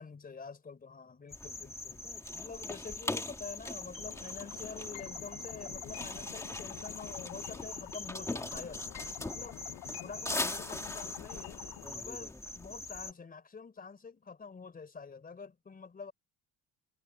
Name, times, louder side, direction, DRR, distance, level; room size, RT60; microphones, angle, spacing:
voice 1, 0.0-2.1 2.3-8.8 9.2-9.6 10.0-11.6 11.9-16.1, left 5 dB, 25° left, 4.5 m, -47 dB
sound 1, 1.3-13.1, left 2 dB, 10° left, 1.8 m, -40 dB
sound 2, 3.9-11.9, left 17 dB, 80° left, 0.7 m, -48 dB
cardioid pair, 150°, 35 cm